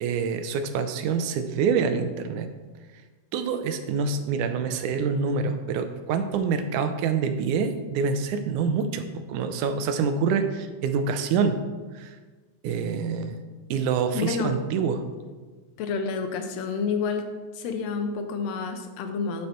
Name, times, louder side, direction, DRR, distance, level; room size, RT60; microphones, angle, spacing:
voice 1, 0.0-2.5 3.3-11.6 12.0-12.1 12.6-13.3 13.7-15.0, right 5 dB, 85° right, 8 dB, 2.2 m, -26 dB
voice 2, 14.1-14.5 15.8-17.3 17.6-19.5, left 5 dB, 70° left, 6 dB, 1.8 m, -29 dB
10.5 x 5.5 x 4.4 m, 1.3 s
omnidirectional pair, 3.5 m